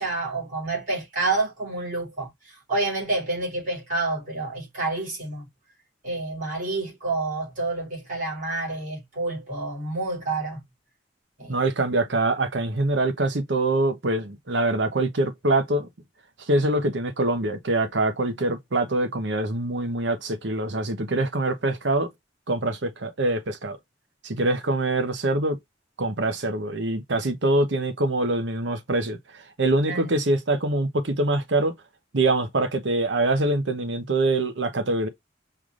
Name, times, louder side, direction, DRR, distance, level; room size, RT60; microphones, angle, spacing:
voice 1, 0.0-5.5 6.0-10.6 11.4-11.6 29.9-30.0, right 2 dB, 45° right, 3.4 m, -28 dB
voice 2, 11.5-15.9 16.5-22.1 22.5-23.8 24.2-25.6 26.0-29.2 29.6-31.7 32.1-35.1, right 2 dB, 75° right, 1.0 m, -24 dB
5.7 x 3.3 x 2.5 m
head